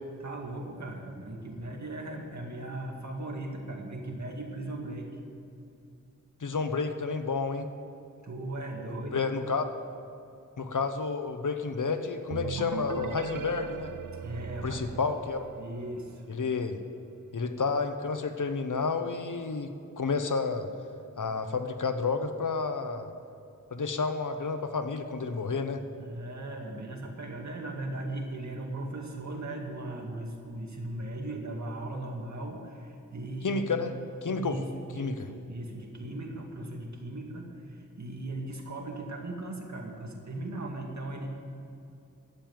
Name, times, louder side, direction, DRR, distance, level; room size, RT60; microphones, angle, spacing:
voice 1, 0.2-5.1 8.2-9.3 14.2-14.8 15.6-16.2 26.0-33.7 34.3-41.3, right 2 dB, 60° right, 1 dB, 2.1 m, -38 dB
voice 2, 6.4-7.7 9.1-9.6 10.6-13.9 14.6-15.5 16.3-16.8 17.3-20.7 21.2-23.1 23.7-25.8 33.4-33.9 34.2-34.6 35.0-35.2, left 4 dB, 70° left, 8 dB, 1.0 m, -30 dB
sound 1, 12.3-16.0, right 8 dB, 80° right, 0.5 m, -39 dB
12.0 x 7.7 x 9.2 m, 2.7 s
wide cardioid pair, 80°, 32 cm